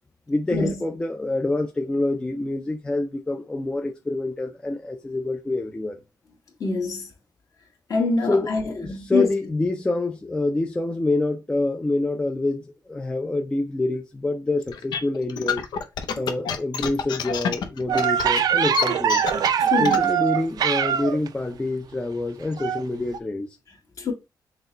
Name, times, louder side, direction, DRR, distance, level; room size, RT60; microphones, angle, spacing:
voice 1, 0.3-6.0 8.3-15.6 16.2-19.2 19.8-23.6, left 2 dB, 15° left, 0.4 m, -26 dB
voice 2, 6.6-7.1 7.9-9.3 19.6-20.0 24.0-24.1, left 3 dB, 50° left, 1.6 m, -25 dB
sound 1, 14.7-20.0, left 7 dB, 85° left, 0.7 m, -27 dB
sound 2, 17.9-21.3 22.6-22.8 23.1-23.2, right 9 dB, 60° right, 0.4 m, -22 dB
5.9 x 2.2 x 3.9 m
cardioid pair, 125°, 7 cm